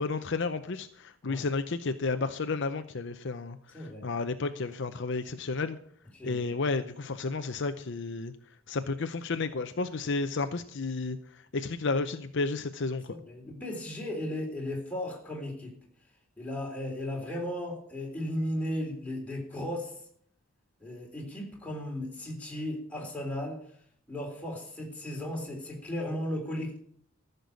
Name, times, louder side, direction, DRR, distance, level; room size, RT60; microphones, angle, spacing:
voice 1, 0.0-5.8 6.2-8.3 8.7-13.1, left 3 dB, 55° left, 9 dB, 0.7 m, -32 dB
voice 2, 3.7-4.1 6.1-6.5 13.1-15.7 16.4-20.0 20.8-23.6 24.1-26.8, left 1 dB, 5° left, -2 dB, 3.7 m, -35 dB
14.5 x 6.8 x 8.0 m, 0.62 s
head